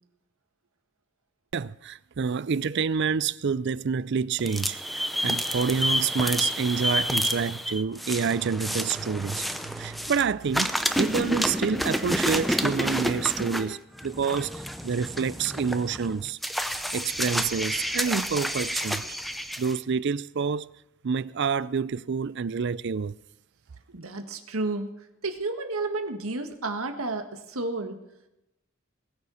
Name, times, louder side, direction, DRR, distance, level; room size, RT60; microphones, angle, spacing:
voice 1, 1.5-16.4 16.9-19.2 19.6-20.7 21.0-23.1, right 6 dB, 55° right, 0.4 m, -28 dB
sound 1, 4.4-10.2 10.5-19.7, equal, ahead, 0.6 m, -29 dB
voice 2, 23.9-24.9 25.2-28.0, right 3 dB, 90° right, 1.8 m, -31 dB
20.5 x 7.0 x 6.4 m
head